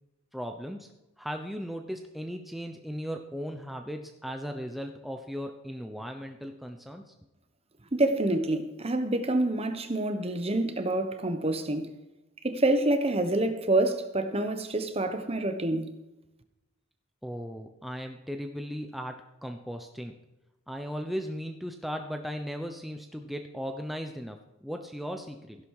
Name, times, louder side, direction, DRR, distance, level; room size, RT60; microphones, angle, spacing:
voice 1, 0.3-0.9 1.2-7.1 17.2-20.1 20.7-25.6, equal, ahead, 0.8 m, -37 dB
voice 2, 7.9-11.9 12.4-15.9, right 2 dB, 30° right, 1.2 m, -27 dB
15.5 x 11.5 x 4.9 m
head